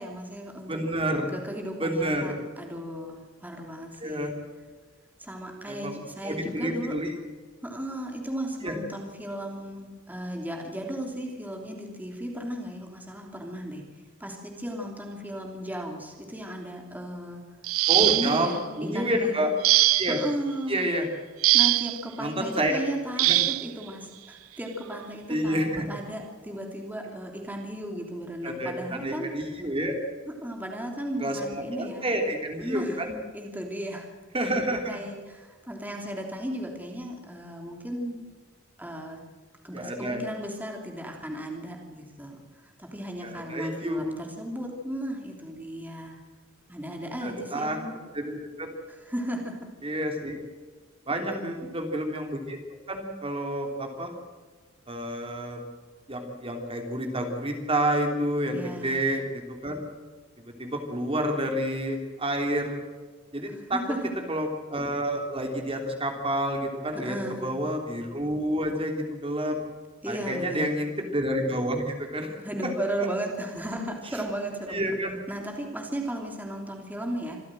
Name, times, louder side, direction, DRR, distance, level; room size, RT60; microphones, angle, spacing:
voice 1, 0.0-0.8 1.1-4.3 5.2-7.0 7.6-13.8 14.2-17.4 18.0-19.5 20.1-20.9 21.5-29.3 30.3-32.1 32.6-33.0 33.3-34.1 34.7-38.2 38.8-39.2 39.6-46.2 46.7-48.0 48.9-49.6 51.2-51.7 58.5-59.0 63.5-64.1 66.9-67.6 70.0-70.8 72.4-74.9 75.3-77.4, right 1 dB, 10° right, 1 dB, 3.1 m, -35 dB
voice 2, 0.7-1.3 1.8-2.4 4.0-4.3 5.6-7.1 8.6-8.7 17.9-18.5 18.8-19.5 19.9-20.2 20.7-21.1 22.2-22.8 23.2-23.4 25.3-25.8 28.4-30.0 31.2-33.1 34.3-35.0 39.7-40.2 43.2-44.1 47.2-47.8 48.1-48.7 49.8-50.4 51.1-52.6 52.9-54.1 54.9-55.6 56.1-59.8 60.4-62.8 63.3-63.8 64.3-67.2 67.4-69.6 70.1-72.7 74.7-75.1, right 1 dB, 25° right, 3 dB, 3.2 m, -29 dB
sound 1, 17.6-18.5 19.6-20.3 21.4-22.0 23.2-23.7 24.9-25.0 25.5-25.7, right 17 dB, 80° right, 0.5 m, -22 dB
26.5 x 14.0 x 7.7 m, 1.5 s
head